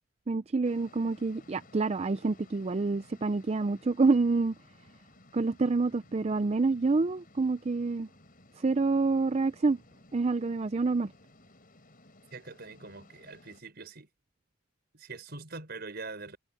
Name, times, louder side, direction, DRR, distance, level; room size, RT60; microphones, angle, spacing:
voice 1, 0.3-4.5 5.3-8.1 8.6-9.8 10.1-11.1, right 3 dB, 35° right, 0.4 m, -27 dB
sound 1, 0.6-13.6, left 2 dB, 45° left, 4.5 m, -58 dB
voice 2, 12.3-14.1 14.9-16.4, right 3 dB, 55° right, 5.1 m, -43 dB
head